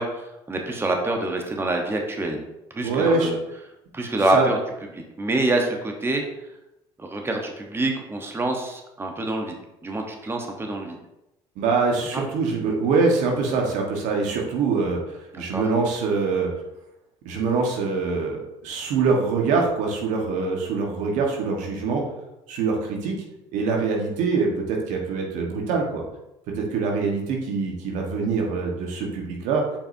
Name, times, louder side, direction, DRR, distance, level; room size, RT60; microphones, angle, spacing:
voice 1, 0.0-2.4 2.7-3.4 3.9-4.6 4.9-6.2 7.0-9.5 9.8-11.0 12.1-12.3 15.3-15.6, right 2 dB, 20° right, 2 dB, 1.0 m, -26 dB
voice 2, 2.8-3.3 4.3-4.4 11.6-15.0 15.4-16.5 17.2-22.0 22.5-23.1 23.5-26.0 26.6-29.6, right 4 dB, 75° right, 0 dB, 1.3 m, -24 dB
7.1 x 5.2 x 2.7 m, 0.90 s
supercardioid pair, 80°, 13 cm